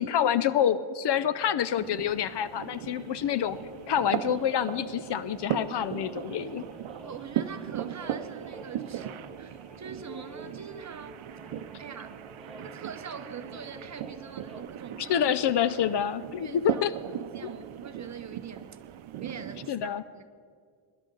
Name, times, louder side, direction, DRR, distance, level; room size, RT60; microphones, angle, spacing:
voice 1, 0.0-3.6 3.9-6.6 15.0-16.9 19.7-20.0, left 9 dB, 55° left, 14 dB, 0.5 m, -27 dB
sound 1, 1.1-14.6, equal, ahead, 1.3 m, -50 dB
sound 2, 1.8-19.7, right 11 dB, 70° right, 0.7 m, -38 dB
voice 2, 7.0-11.2 11.8-12.2 12.6-15.3 16.4-16.9 17.1-18.7 19.2-20.3, right 6 dB, 35° right, 8 dB, 0.8 m, -43 dB
22.5 x 11.5 x 3.8 m, 2.1 s
wide cardioid pair, 165°, 50 cm